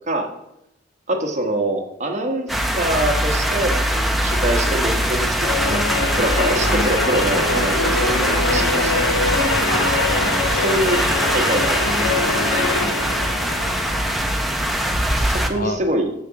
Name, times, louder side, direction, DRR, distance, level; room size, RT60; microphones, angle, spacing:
voice 1, 1.1-5.8 6.2-9.7 10.4-11.0 11.3-11.8 15.2-16.1, right 1 dB, 35° right, 3 dB, 1.2 m, -25 dB
sound 1, 2.5-15.5, equal, ahead, 0.7 m, -22 dB
sound 2, 5.4-14.0, left 3 dB, 80° left, 1.3 m, -24 dB
voice 2, 13.4-15.8, left 3 dB, 45° left, 9 dB, 0.6 m, -34 dB
7.2 x 6.8 x 5.8 m, 0.83 s
head